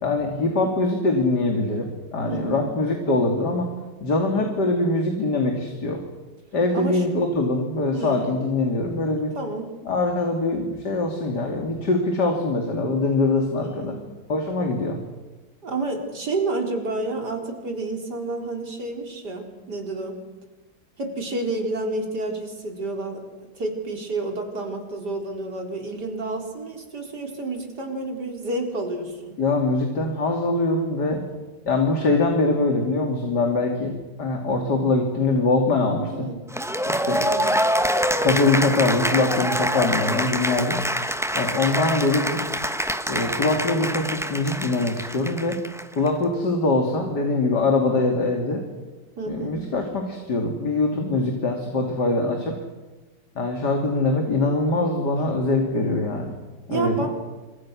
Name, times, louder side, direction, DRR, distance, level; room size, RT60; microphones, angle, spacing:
voice 1, 0.0-3.7 4.0-6.0 6.5-9.3 9.9-13.9 14.3-15.0 29.4-31.2 31.6-33.9 34.2-36.3 36.9-37.2 38.2-40.8 41.3-42.5 43.1-45.6 45.9-48.6 49.3-52.5 53.3-56.2 56.7-57.1, left 2 dB, 70° left, 3 dB, 3.3 m, -23 dB
voice 2, 2.2-2.7 6.7-7.0 7.9-8.4 9.3-9.8 13.6-14.0 15.6-20.2 21.0-29.4 35.9-36.5 37.0-37.6 49.2-49.6 56.7-57.1, right 2 dB, 65° right, 3 dB, 4.6 m, -30 dB
Cheering / Applause, 36.5-46.1, equal, ahead, 1.0 m, -25 dB
28.0 x 26.0 x 6.3 m, 1.2 s
omnidirectional pair, 1.9 m